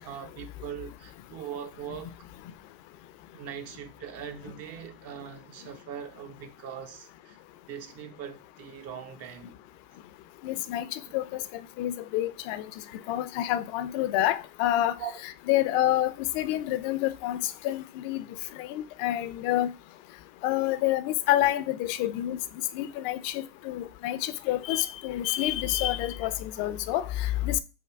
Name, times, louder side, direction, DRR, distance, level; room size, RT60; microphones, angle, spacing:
voice 1, 0.0-2.3 3.3-7.4 7.7-9.6 11.0-11.1 15.0-15.1, right 8 dB, 55° right, 0.8 m, -41 dB
voice 2, 10.4-11.4 11.8-12.6 13.1-14.9 15.5-18.2 18.6-19.7 20.4-22.4 22.7-27.6, left 14 dB, 65° left, 0.5 m, -28 dB
3.6 x 2.6 x 4.5 m
hypercardioid pair, 95°, 29 cm